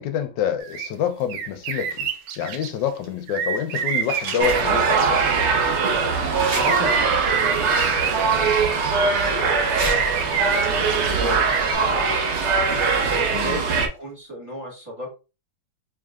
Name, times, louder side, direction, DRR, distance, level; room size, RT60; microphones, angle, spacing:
voice 1, 0.0-2.1 2.4-5.3 13.3-13.6, left 9 dB, 75° left, 1.3 m, -27 dB
sound 1, 0.6-0.9 1.3-2.7 3.3-5.7 6.4-8.9 9.9-11.1 11.4-11.7, right 7 dB, 75° right, 1.2 m, -28 dB
sound 2, 1.9-3.1 3.4-4.9 5.4-5.5 6.3-7.3 8.2-9.2 9.6-14.0 14.3-14.4, right 2 dB, 45° right, 1.2 m, -37 dB
sound 3, 4.4-13.9, right 5 dB, 60° right, 0.7 m, -21 dB
voice 2, 6.4-11.5 11.7-12.5 12.8-15.1, equal, 10° right, 1.4 m, -35 dB
4.7 x 3.1 x 2.3 m
omnidirectional pair, 2.1 m